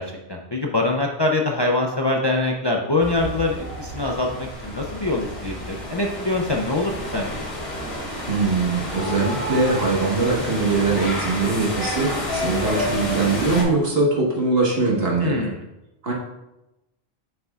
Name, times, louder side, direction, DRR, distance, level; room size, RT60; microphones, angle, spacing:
voice 1, 0.0-7.5 15.2-15.6, left 2 dB, 35° left, 0 dB, 0.4 m, -24 dB
sound 1, 3.0-13.6, equal, 75° left, 2.0 m, -30 dB
voice 2, 8.3-15.5 16.0-16.1, right 3 dB, 65° right, -3 dB, 1.7 m, -22 dB
6.8 x 6.7 x 2.4 m, 0.95 s
omnidirectional pair, 1.1 m